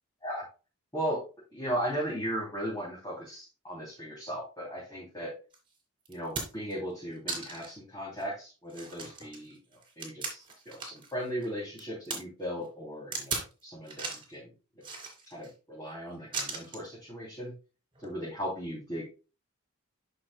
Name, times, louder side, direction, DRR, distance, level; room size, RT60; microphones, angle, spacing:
voice 1, 1.5-5.3 6.1-9.6 10.0-14.5 15.3-17.5 18.0-19.0, equal, 15° left, -6 dB, 3.1 m, -37 dB
sound 1, 5.5-5.6 6.1-6.7 7.3-7.8 8.2-8.3 8.7-11.1 11.4-12.2 13.1-13.5 13.9-14.3 14.8-15.5 16.3-16.9 17.9-18.1, right 4 dB, 20° right, 2.6 m, -37 dB
10.5 x 6.5 x 2.3 m, 0.32 s
head